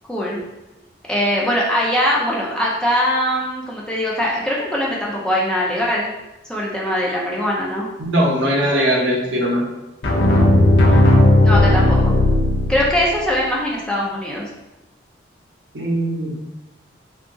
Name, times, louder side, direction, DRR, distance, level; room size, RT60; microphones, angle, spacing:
voice 1, 0.1-0.4 1.1-6.1 6.4-7.9 10.7-11.0 11.4-12.2 12.7-14.5, equal, 5° left, -5 dB, 0.4 m, -21 dB
voice 2, 8.0-9.6 15.7-16.5, equal, 75° right, -3 dB, 0.7 m, -20 dB
sound 1, 10.0-13.2, left 1 dB, 65° left, 0.6 m, -14 dB
2.8 x 2.4 x 2.5 m, 1.0 s
head